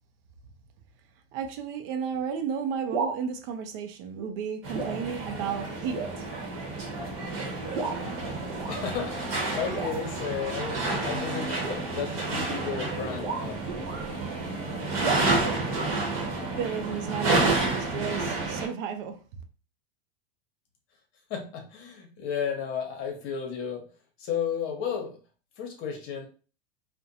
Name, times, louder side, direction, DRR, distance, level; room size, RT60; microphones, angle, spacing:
voice 1, 1.3-6.3 16.5-19.2, right 7 dB, 55° right, 0.5 m, -33 dB
sound 1, 2.8-3.2 4.1-4.4 4.7-5.0 5.4-5.5 5.9-6.2 6.9-7.0 7.7-8.0 8.6-8.8 9.7-10.2 11.5-14.1 15.0-15.2, right 4 dB, 90° right, 0.8 m, -34 dB
sound 2, 4.6-18.7, right 2 dB, 40° right, 1.1 m, -30 dB
voice 2, 8.7-11.6 11.9-13.6 21.3-23.8 24.2-25.2 25.6-26.3, left 7 dB, 45° left, 0.9 m, -33 dB
2.5 x 2.2 x 2.7 m
supercardioid pair, 130°, 32 cm